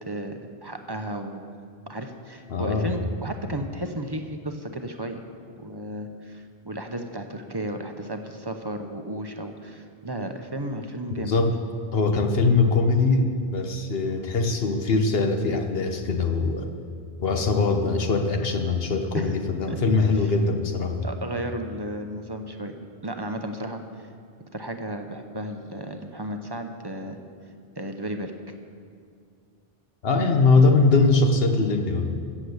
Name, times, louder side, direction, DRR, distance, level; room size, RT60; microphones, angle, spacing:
voice 1, 0.0-1.5 1.9-5.2 5.6-11.3 19.1-19.3 19.7-19.8 20.2-20.3 21.0-22.8 23.0-24.1 24.5-27.2 27.8-28.3 30.2-30.4, right 1 dB, 25° right, 6 dB, 0.8 m, -34 dB
voice 2, 2.5-3.0 11.2-11.5 11.9-16.7 17.2-21.0 30.0-32.1, left 3 dB, 70° left, 5 dB, 1.2 m, -22 dB
15.0 x 7.2 x 8.0 m, 2.3 s
omnidirectional pair, 1.0 m